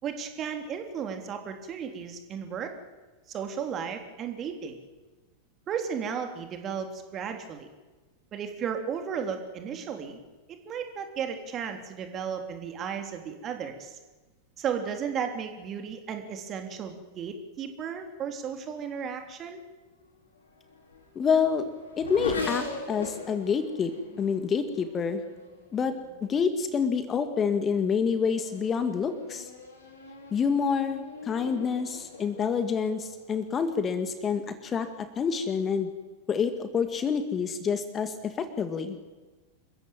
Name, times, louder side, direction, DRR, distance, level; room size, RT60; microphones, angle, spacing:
voice 1, 0.0-2.7 3.3-4.8 5.7-7.7 8.3-10.2 10.6-14.0 14.6-19.6, right 7 dB, 30° right, 5 dB, 3.3 m, -34 dB
Race car auto racing / Accelerating revving vroom, 20.3-26.2 27.0-27.4 27.8-33.7, left 3 dB, 70° left, 6.0 m, -41 dB
voice 2, 21.2-21.7 22.0-23.9 24.2-25.2 25.7-29.5 30.3-35.9 36.3-39.0, left 6 dB, 25° left, 9 dB, 2.1 m, -27 dB
27.5 x 15.0 x 9.1 m, 1.3 s
figure-of-eight pair, 90°, 0 cm